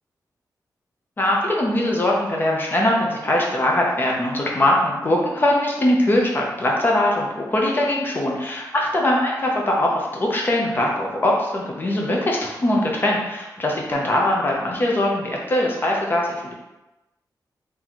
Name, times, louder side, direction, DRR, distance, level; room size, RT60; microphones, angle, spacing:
voice 1, 1.2-16.5, left 1 dB, 30° left, -2 dB, 0.6 m, -21 dB
4.0 x 2.7 x 2.9 m, 1.0 s
wide cardioid pair, 175°, 7 cm